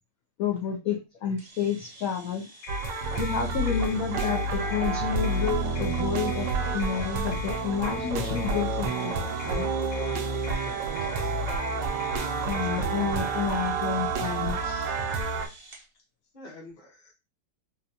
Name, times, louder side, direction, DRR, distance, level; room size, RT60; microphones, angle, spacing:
voice 1, 0.4-2.5 3.2-6.5 6.7-9.7 12.5-14.9, left 7 dB, 70° left, 1 dB, 0.8 m, -30 dB
sound 1, 1.4-15.9, right 2 dB, 55° right, 0.6 m, -48 dB
sound 2, 2.6-12.8, left 7 dB, 90° left, 1.4 m, -43 dB
sound 3, 2.7-15.5, right 3 dB, 75° right, 1.3 m, -29 dB
voice 2, 10.1-11.3 12.0-12.1 12.6-12.8 15.4-15.8 16.3-17.1, left 2 dB, 35° left, 0 dB, 0.8 m, -50 dB
3.8 x 2.2 x 2.7 m, 0.26 s
omnidirectional pair, 2.1 m